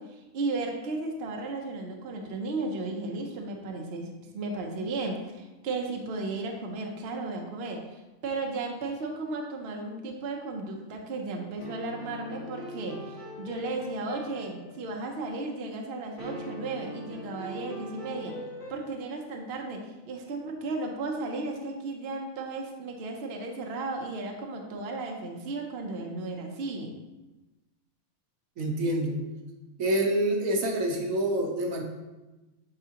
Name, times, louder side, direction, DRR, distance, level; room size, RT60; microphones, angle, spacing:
voice 1, 0.0-18.3 18.7-27.0, right 3 dB, 55° right, 2 dB, 0.9 m, -35 dB
sound 1, 11.6-15.3 16.2-18.7, left 1 dB, 35° left, 2.5 m, -41 dB
voice 2, 28.6-29.2 29.8-31.8, right 1 dB, 75° right, 1 dB, 1.2 m, -27 dB
9.9 x 3.5 x 2.9 m, 1.1 s
omnidirectional pair, 1.5 m